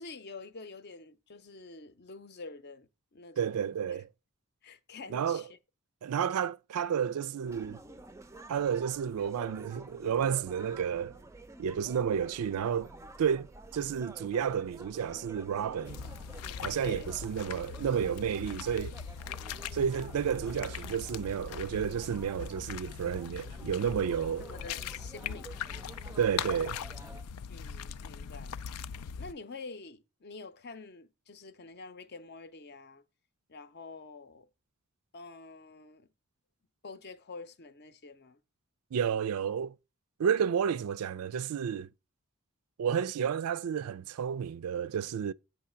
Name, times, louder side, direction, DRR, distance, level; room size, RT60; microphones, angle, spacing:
voice 1, 0.0-3.6 4.6-5.5 16.8-17.1 24.4-25.8 27.5-28.6 29.2-33.0 33.5-34.5 35.1-36.1 36.8-38.4, left 3 dB, 50° left, 0.6 m, -47 dB
voice 2, 3.4-4.1 5.1-5.4 6.0-7.8 8.5-11.2 11.6-12.9 13.2-13.5 13.7-16.0 16.6-18.9 19.7-24.4 26.2-26.8 38.9-39.7 40.2-41.9 42.8-45.3, right 7 dB, 85° right, 0.4 m, -31 dB
sound 1, 7.4-27.2, right 2 dB, 15° right, 0.4 m, -50 dB
sound 2, 15.9-29.3, left 7 dB, 90° left, 0.4 m, -41 dB
8.5 x 3.2 x 5.6 m
head